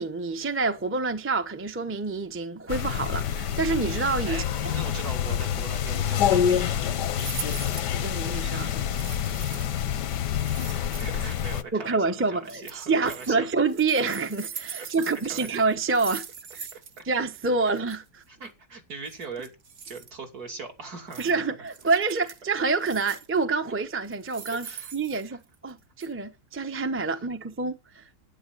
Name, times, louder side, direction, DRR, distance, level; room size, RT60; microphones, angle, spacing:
voice 1, 0.0-4.7 7.9-8.7 11.7-16.3 16.5-16.7 17.0-18.2 21.2-24.7 24.9-28.1, right 4 dB, 10° right, 0.7 m, -27 dB
sound 1, 2.7-11.6, left 9 dB, 80° left, 1.5 m, -27 dB
voice 2, 4.3-6.9 7.9-8.1 11.0-13.5 14.7-15.5 16.7-17.0 18.3-19.5 19.9-21.5 24.6-25.4, right 4 dB, 65° right, 3.2 m, -41 dB
sound 2, 7.1-7.9 8.9-9.8 10.3-11.3 12.4-13.3 13.7-17.0 17.3-17.4 17.7-18.0 19.1-20.1 21.1-21.3 21.7-22.4 22.8-23.4 24.0-25.7 26.0-26.1, right 7 dB, 45° right, 1.1 m, -41 dB
11.0 x 9.5 x 7.9 m
omnidirectional pair, 1.8 m